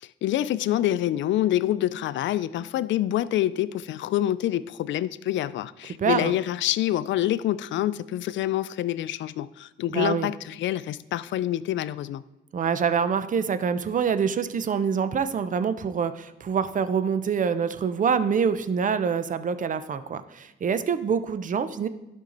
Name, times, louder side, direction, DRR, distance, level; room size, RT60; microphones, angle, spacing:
voice 1, 0.0-12.2, left 13 dB, 70° left, 17 dB, 0.4 m, -26 dB
voice 2, 6.0-6.3 9.9-10.3 12.5-21.9, right 6 dB, 40° right, 12 dB, 0.6 m, -25 dB
11.5 x 5.5 x 3.9 m, 0.97 s
cardioid pair, 90°, 20 cm